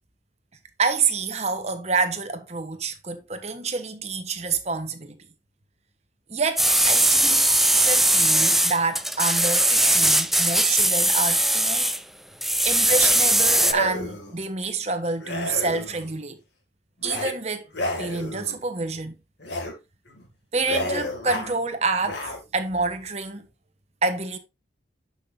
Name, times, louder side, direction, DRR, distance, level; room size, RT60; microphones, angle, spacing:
voice 1, 0.8-5.2 6.3-7.4 7.7-11.9 12.6-16.4 17.0-17.6 18.0-19.1 20.5-22.2 22.5-23.5 24.0-24.4, right 4 dB, 35° right, 1.2 m, -27 dB
sound 1, 6.6-12.0 12.4-13.7, right 1 dB, ahead, 0.4 m, -20 dB
sound 2, 12.8-13.1 13.5-14.4 15.2-16.1 17.0-17.3 17.7-18.6 19.4-19.7 20.1-20.3 20.6-21.5 22.0-22.4, left 1 dB, 75° left, 2.5 m, -31 dB
10.5 x 5.9 x 2.7 m
head